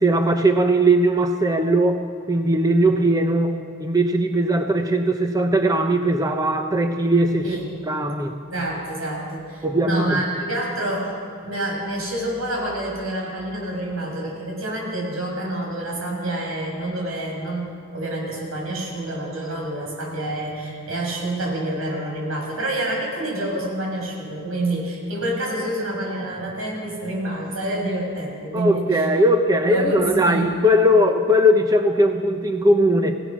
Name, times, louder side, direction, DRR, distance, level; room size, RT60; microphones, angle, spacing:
voice 1, 0.0-2.0 2.3-7.5 7.9-8.3 9.6-10.2 28.5-33.1, right 1 dB, 20° right, 5 dB, 0.9 m, -19 dB
voice 2, 8.5-11.1 11.4-29.1 29.6-30.5, right 1 dB, 85° right, 0 dB, 6.2 m, -27 dB
27.0 x 17.0 x 6.2 m, 2.2 s
head